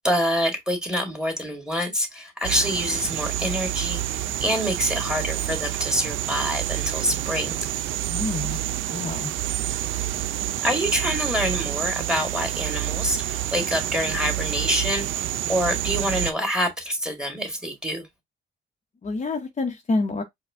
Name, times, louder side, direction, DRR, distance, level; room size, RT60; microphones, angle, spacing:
voice 1, 0.0-7.7 10.6-18.1, equal, 5° right, 2.0 m, -26 dB
sound 1, 2.4-16.3, right 13 dB, 80° right, 0.5 m, -28 dB
voice 2, 8.1-8.6 8.9-9.3 9.9-10.2 19.0-20.2, left 3 dB, 35° left, 0.9 m, -28 dB
4.7 x 2.3 x 3.5 m
cardioid pair, 90°, 20 cm